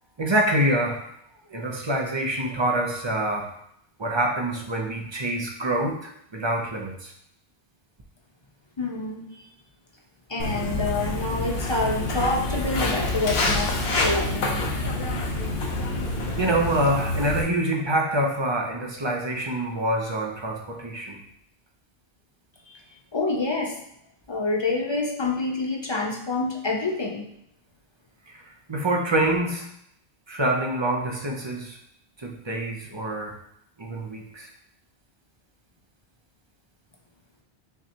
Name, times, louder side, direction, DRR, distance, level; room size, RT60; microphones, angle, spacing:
voice 1, 0.2-1.0 1.5-3.5 4.0-7.1 16.4-21.2 28.3-28.4 28.7-29.7 30.3-31.8 32.2-33.3 33.8-34.5, right 1 dB, 30° right, 0 dB, 0.6 m, -26 dB
voice 2, 8.8-9.3 10.3-14.7 22.7-22.8 23.1-23.8 24.3-27.3, left 3 dB, 35° left, 0 dB, 0.5 m, -27 dB
Walk footsteps, 10.4-17.4, left 2 dB, 75° left, 1.1 m, -27 dB
5.8 x 3.1 x 2.8 m, 0.73 s
omnidirectional pair, 1.1 m